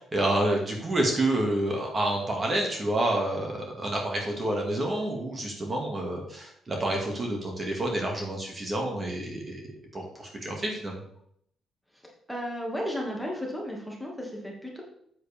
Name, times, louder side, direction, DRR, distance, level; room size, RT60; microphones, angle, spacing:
voice 1, 0.1-3.5 3.8-11.0, right 1 dB, 30° right, 0 dB, 2.3 m, -28 dB
voice 2, 12.3-14.8, equal, ahead, -2 dB, 2.3 m, -34 dB
8.1 x 7.7 x 3.6 m, 0.70 s
cardioid pair, 90°, 0 cm